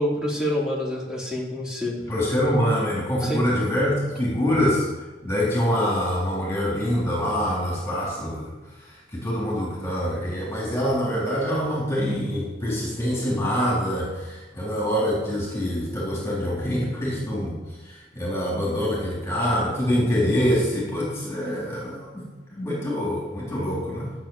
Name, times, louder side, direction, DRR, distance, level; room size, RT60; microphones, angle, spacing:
voice 1, 0.0-2.0 3.2-3.4 20.2-20.4, left 1 dB, 5° right, -5 dB, 3.2 m, -27 dB
voice 2, 2.1-4.9 5.2-22.2 22.5-24.1, equal, 15° left, -5 dB, 3.8 m, -25 dB
12.0 x 6.8 x 8.9 m, 1.2 s
head